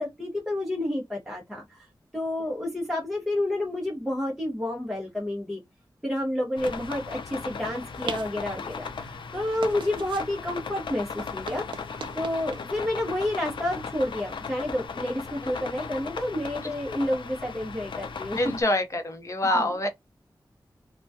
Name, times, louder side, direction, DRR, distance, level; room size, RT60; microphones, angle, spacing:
voice 1, 0.0-1.9 2.1-5.6 6.0-11.9 12.1-18.4 19.5-19.6, left 1 dB, ahead, 0.7 m, -30 dB
sound 1, 6.6-18.6, left 5 dB, 85° left, 0.4 m, -37 dB
sound 2, 7.3-14.9, right 5 dB, 85° right, 0.3 m, -44 dB
voice 2, 18.4-19.9, left 1 dB, 40° left, 0.7 m, -25 dB
2.2 x 2.2 x 2.5 m
wide cardioid pair, 105°, 8 cm